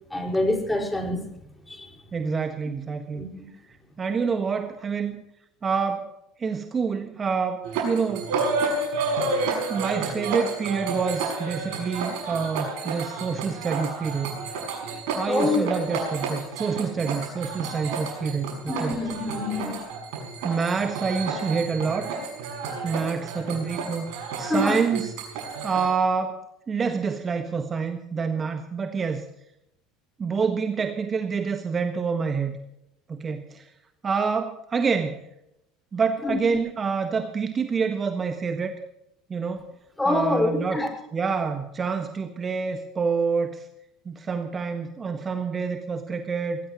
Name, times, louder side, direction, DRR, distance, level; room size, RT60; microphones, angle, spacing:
voice 1, 0.1-1.2 1.7-1.9 3.1-3.5 15.2-15.7 18.7-19.8 24.4-24.8 36.2-36.4 40.0-40.9, left 2 dB, 10° left, 2 dB, 5.0 m, -26 dB
voice 2, 2.1-3.2 4.0-5.2 5.6-6.1 6.4-8.3 9.7-14.4 15.2-18.9 20.4-22.2 22.8-25.1 25.6-26.4 26.7-29.2 30.2-32.6 33.1-33.7 34.0-35.2 35.9-38.7 39.3-39.7 40.1-40.8 41.1-43.6 44.0-46.6, right 5 dB, 30° right, 7 dB, 1.5 m, -27 dB
sound 1, 7.6-25.9, right 4 dB, 65° right, 6.4 m, -31 dB
20.0 x 19.0 x 3.0 m, 0.82 s
figure-of-eight pair, 70°, 0 cm